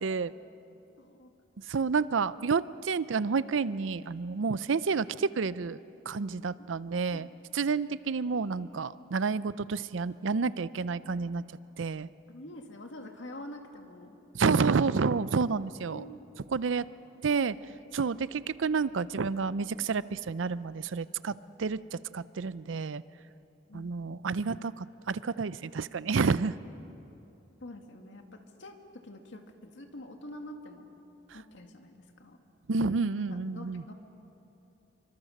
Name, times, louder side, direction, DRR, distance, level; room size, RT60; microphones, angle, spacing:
voice 1, 0.0-0.3 1.7-5.8 6.1-7.3 7.5-11.4 11.8-12.1 14.3-16.0 16.5-16.8 17.2-17.6 17.9-23.0 23.7-26.6 32.7-33.8, right 5 dB, 85° right, 17 dB, 0.5 m, -29 dB
voice 2, 1.0-1.3 6.6-6.7 7.1-7.3 12.3-14.2 14.5-14.8 15.9-16.2 23.7-23.9 27.6-30.9 31.3-32.4 33.1-33.3 33.5-33.9, left 1 dB, 70° left, 4 dB, 2.1 m, -46 dB
26.5 x 24.5 x 6.6 m, 2.9 s
head